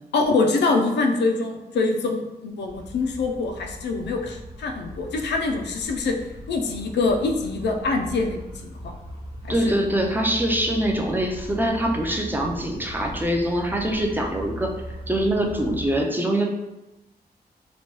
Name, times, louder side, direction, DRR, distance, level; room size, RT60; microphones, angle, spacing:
voice 1, 0.1-6.2 6.5-8.9 9.6-9.8, left 3 dB, 90° left, 3 dB, 0.4 m, -24 dB
sound 1, 2.7-15.9, equal, 30° right, 0.8 m, -39 dB
voice 2, 9.5-14.7 15.1-16.5, right 1 dB, 10° right, 1 dB, 0.3 m, -24 dB
3.0 x 2.1 x 3.0 m, 1.0 s
wide cardioid pair, 120°, 17 cm